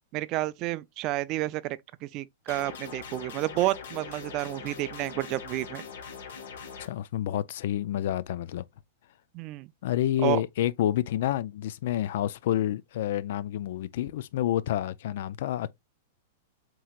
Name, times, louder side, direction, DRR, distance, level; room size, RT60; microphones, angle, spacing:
voice 1, 0.1-5.8 9.3-9.7 10.2-10.4, right 17 dB, 35° right, 0.3 m, -30 dB
sound 1, 2.5-6.9, left 6 dB, 85° left, 1.6 m, -42 dB
voice 2, 6.8-8.6 9.8-15.7, left 12 dB, 60° left, 0.3 m, -29 dB
7.4 x 2.9 x 2.3 m
supercardioid pair, 160°, 0 cm